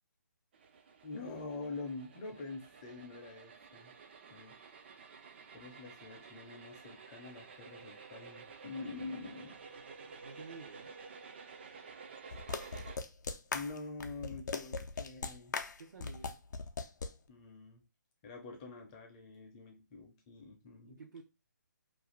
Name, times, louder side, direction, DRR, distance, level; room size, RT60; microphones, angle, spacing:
sound 1, 0.5-13.0, right 5 dB, 35° right, 0.3 m, -52 dB
voice 1, 1.0-3.9 4.3-4.6 5.5-9.6 13.5-15.5 17.3-17.8 18.2-21.0, left 3 dB, 20° left, 0.5 m, -46 dB
voice 2, 10.0-11.0 15.8-16.4 20.8-21.2, right 4 dB, 75° right, 0.6 m, -51 dB
sound 2, 12.3-17.1, left 4 dB, 70° left, 0.4 m, -39 dB
2.5 x 2.3 x 3.1 m
hypercardioid pair, 160°, 10 cm